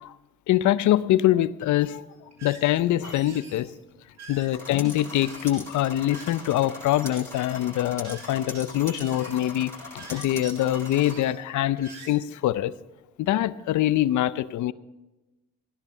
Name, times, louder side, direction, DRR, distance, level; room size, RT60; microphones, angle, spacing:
voice 1, 0.5-2.0 2.4-3.7 4.3-12.7 13.2-14.7, left 13 dB, 75° left, 16 dB, 0.6 m, -24 dB
sound 1, 1.8-12.2, right 4 dB, 60° right, 2.8 m, -48 dB
sound 2, 4.5-11.2, left 2 dB, 10° left, 6.6 m, -41 dB
16.5 x 10.5 x 5.5 m, 1.1 s
cardioid pair, 90°, 30 cm